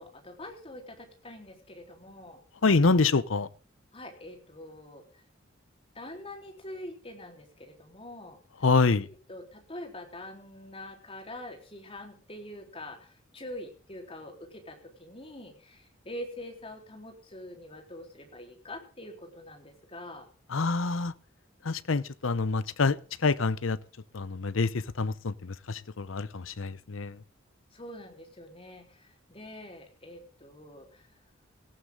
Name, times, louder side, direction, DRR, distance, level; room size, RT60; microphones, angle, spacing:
voice 1, 0.0-2.4 3.9-5.2 5.9-8.4 9.0-20.3 27.7-31.1, left 1 dB, 30° left, 3.9 m, -44 dB
voice 2, 2.6-3.5 8.6-9.1 20.5-21.1 21.6-23.8 24.1-27.2, left 4 dB, 80° left, 0.8 m, -26 dB
18.0 x 14.5 x 3.8 m
head